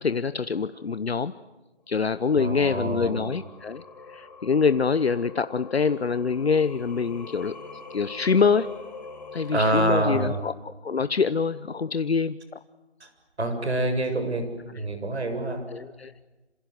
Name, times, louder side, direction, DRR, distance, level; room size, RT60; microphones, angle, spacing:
voice 1, 0.0-1.3 1.9-3.8 4.1-7.5 7.9-8.7 9.3-12.4 15.7-16.1, left 5 dB, 65° left, 13 dB, 0.9 m, -25 dB
Singing, 2.1-10.3, left 4 dB, 40° left, 4.3 m, -44 dB
voice 2, 2.4-3.3 9.5-10.4 13.0-13.1 13.4-15.7, right 1 dB, 70° right, 7 dB, 7.1 m, -26 dB
27.5 x 27.0 x 7.9 m, 1.1 s
hypercardioid pair, 180°, 34 cm